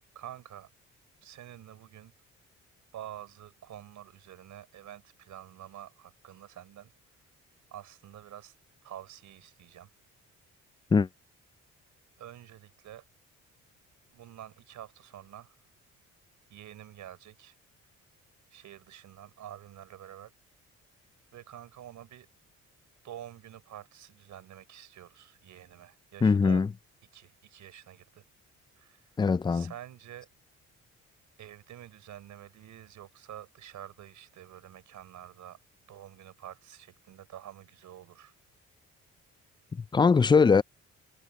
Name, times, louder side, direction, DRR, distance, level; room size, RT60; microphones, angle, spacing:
voice 1, 0.2-0.7 1.2-2.1 2.9-6.9 7.7-8.6 8.8-9.9 12.2-13.1 14.1-15.6 16.5-17.5 18.5-20.3 21.3-22.3 23.0-26.6 27.1-28.2 28.8-29.1 29.5-30.3 31.4-35.6 35.9-38.3, right 11 dB, 75° right, 5.2 m, -48 dB
voice 2, 26.2-26.7 29.2-29.7 39.9-40.6, left 5 dB, 15° left, 0.3 m, -21 dB
cardioid pair, 90°, 30 cm